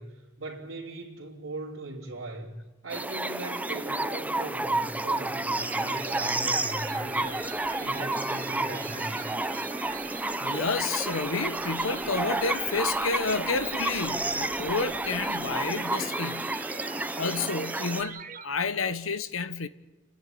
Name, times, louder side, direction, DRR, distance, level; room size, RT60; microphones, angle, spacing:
voice 1, 0.0-2.6 2.8-9.3, right 2 dB, 70° right, 3.3 m, -39 dB
sound 1, 2.9-18.0, right 2 dB, 5° right, 0.6 m, -31 dB
sound 2, 5.6-18.5, right 7 dB, 45° right, 1.1 m, -41 dB
sound 3, 7.2-17.1, left 1 dB, 55° left, 6.0 m, -55 dB
voice 2, 10.4-16.7 17.1-19.7, left 4 dB, 85° left, 1.2 m, -30 dB
30.0 x 10.5 x 9.3 m
head